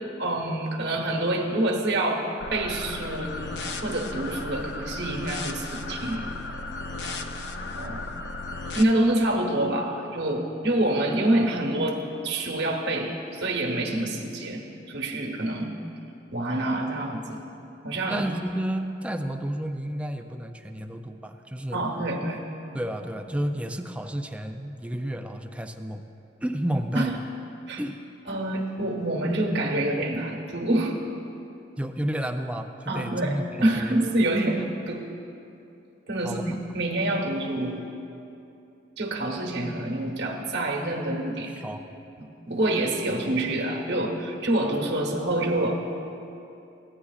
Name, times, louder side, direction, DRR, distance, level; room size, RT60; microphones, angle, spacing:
voice 1, 0.2-3.4 3.8-6.3 7.8-8.0 8.7-12.0 12.2-15.7 16.3-17.4 17.8-18.3 21.7-22.4 26.9-27.2 27.7-27.8 28.3-31.0 32.9-35.1 36.1-37.9 39.0-41.5 42.5-45.8, right 1 dB, 70° right, 1 dB, 1.2 m, -26 dB
sound 1, 2.4-8.8, left 2 dB, 70° left, 0.5 m, -35 dB
voice 2, 18.1-21.8 22.7-26.1 26.4-27.2 27.8-28.0 31.8-34.0 36.2-36.4 41.6-41.8, right 1 dB, 5° right, 6 dB, 0.3 m, -31 dB
14.5 x 9.8 x 2.4 m, 2.8 s
head